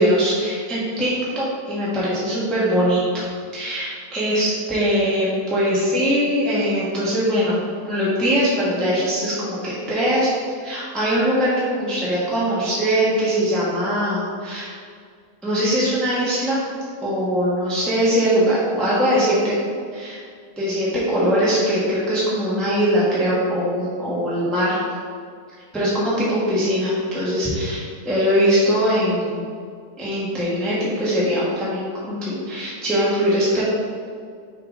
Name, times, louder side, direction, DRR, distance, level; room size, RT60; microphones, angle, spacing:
voice 1, 0.0-3.3 3.5-7.6 7.9-10.3 10.6-14.7 15.4-16.6 17.0-19.5 19.9-20.2 20.6-24.8 25.7-29.4 30.0-33.6, equal, ahead, -9 dB, 1.1 m, -21 dB
6.7 x 3.9 x 3.7 m, 2.1 s
omnidirectional pair, 1.8 m